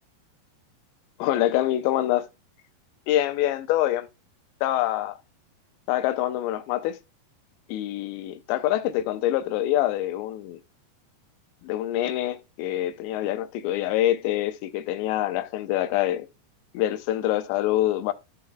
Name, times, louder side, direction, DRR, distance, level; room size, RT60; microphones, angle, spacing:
voice 1, 1.2-2.3 3.1-4.1 4.6-5.2 5.9-7.0 7.7-10.6 11.6-16.3 16.7-18.1, left 13 dB, 85° left, 2.9 m, -25 dB
14.0 x 4.7 x 2.3 m
omnidirectional pair, 5.1 m